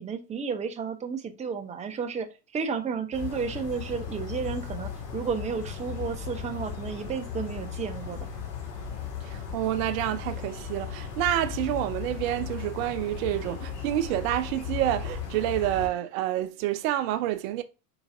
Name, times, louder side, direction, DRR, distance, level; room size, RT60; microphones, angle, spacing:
voice 1, 0.0-8.2, right 6 dB, 15° right, 0.7 m, -32 dB
sound 1, 3.1-15.9, left 7 dB, 70° left, 2.1 m, -36 dB
voice 2, 9.2-17.6, right 13 dB, 55° right, 0.6 m, -28 dB
4.8 x 3.9 x 2.6 m
hypercardioid pair, 90°, 49 cm